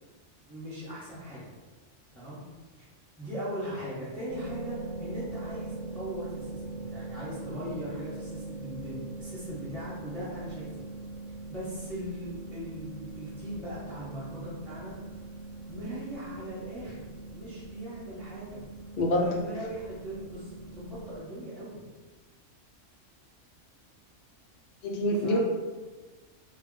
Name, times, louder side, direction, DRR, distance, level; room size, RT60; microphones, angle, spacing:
voice 1, 0.4-1.5 2.1-2.4 2.8-2.9 3.2-10.8 11.5-15.0 15.7-17.0 17.3-18.6 19.1-21.8 25.1-25.4, equal, ahead, -11 dB, 0.8 m, -39 dB
sound 1, 4.3-21.2, right 2 dB, 75° right, 1.0 m, -42 dB
voice 2, 19.0-19.4 24.8-25.4, left 1 dB, 65° left, -1 dB, 0.5 m, -26 dB
2.3 x 2.2 x 3.7 m, 1.3 s
omnidirectional pair, 1.3 m